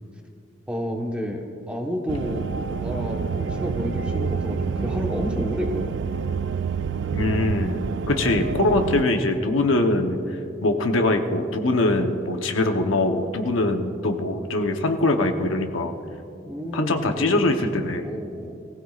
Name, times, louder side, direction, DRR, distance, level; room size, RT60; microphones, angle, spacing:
voice 1, 0.7-6.0 8.2-8.5 16.4-17.7 18.0-18.6, equal, 5° right, 1 dB, 1.1 m, -31 dB
sound 1, 2.1-9.0, right 5 dB, 60° right, 0.3 m, -27 dB
voice 2, 7.1-10.2 10.6-15.9 16.7-18.1, left 2 dB, 85° left, 5 dB, 0.9 m, -22 dB
23.0 x 16.0 x 2.4 m, 2.6 s
head